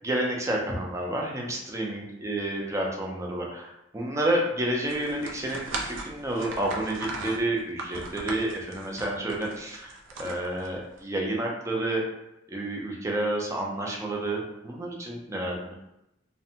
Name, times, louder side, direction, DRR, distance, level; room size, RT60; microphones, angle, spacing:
voice 1, 0.0-12.0 12.5-15.7, right 1 dB, 15° right, -1 dB, 0.4 m, -30 dB
sound 1, 4.9-11.0, right 2 dB, 75° right, 0.4 m, -38 dB
2.5 x 2.1 x 2.7 m, 0.86 s
head